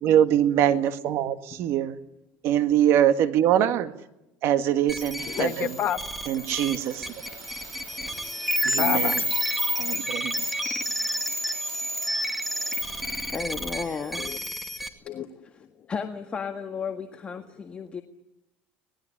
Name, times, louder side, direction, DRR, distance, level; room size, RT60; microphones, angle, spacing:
voice 1, 0.0-2.0 2.4-3.9 4.4-5.7 6.3-7.1 8.6-9.2 9.8-10.5, right 10 dB, 60° right, 11 dB, 1.8 m, -23 dB
sound 1, 4.9-14.9, equal, ahead, 2.5 m, -30 dB
voice 2, 5.2-6.0 8.8-9.4 10.4-10.8 11.1-11.5 14.2-14.4 15.0-15.3 15.6-15.7, left 9 dB, 40° left, 6 dB, 2.0 m, -31 dB
sound 2, 5.2-13.3, right 5 dB, 80° right, 7.5 m, -48 dB
voice 3, 13.3-14.5 15.1-15.3 15.5-18.0, left 5 dB, 25° left, 5 dB, 1.7 m, -34 dB
27.0 x 19.0 x 10.0 m, 0.90 s
cardioid pair, 130°, 5 cm